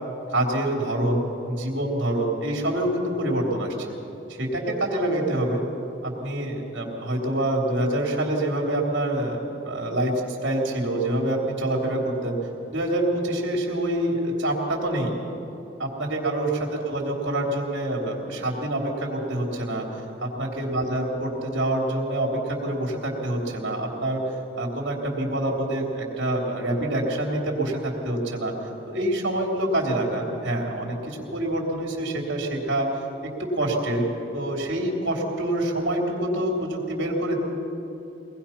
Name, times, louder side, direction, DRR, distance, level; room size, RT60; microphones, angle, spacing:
voice 1, 0.3-3.9 4.3-5.6 6.0-12.4 12.7-15.2 15.8-28.5 28.9-32.9 33.2-37.4, right 1 dB, 70° right, -1 dB, 3.2 m, -26 dB
23.0 x 19.0 x 5.8 m, 2.9 s
head